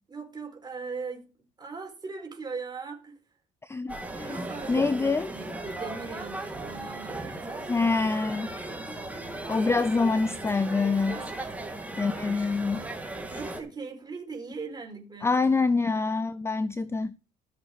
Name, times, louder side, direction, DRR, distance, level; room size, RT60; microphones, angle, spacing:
voice 1, 0.1-1.2 1.6-3.2 4.3-7.9 11.1-11.5 13.3-15.5, right 4 dB, 25° right, 4.9 m, -39 dB
voice 2, 3.7-5.3 7.7-8.5 9.5-11.2 12.0-12.8 15.2-17.1, left 4 dB, 15° left, 0.5 m, -26 dB
sound 1, 3.9-13.6, right 2 dB, 10° right, 2.4 m, -37 dB
14.0 x 7.0 x 4.9 m
cardioid pair, 110°, 17 cm